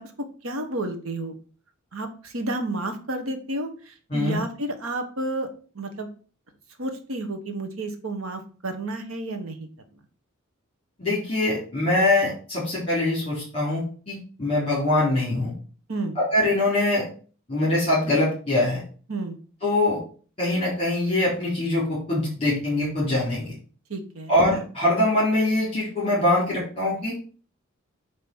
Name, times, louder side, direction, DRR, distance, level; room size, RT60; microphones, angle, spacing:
voice 1, 0.0-1.3 1.9-5.5 5.7-6.1 6.8-9.7 15.9-16.2 19.1-19.4 23.9-24.3, right 2 dB, 90° right, 6 dB, 1.3 m, -31 dB
voice 2, 11.0-15.5 16.1-17.0 17.5-18.8 19.6-20.0 20.4-23.5 24.3-27.2, left 1 dB, 30° left, -7 dB, 3.8 m, -23 dB
8.9 x 3.2 x 6.1 m, 0.40 s
head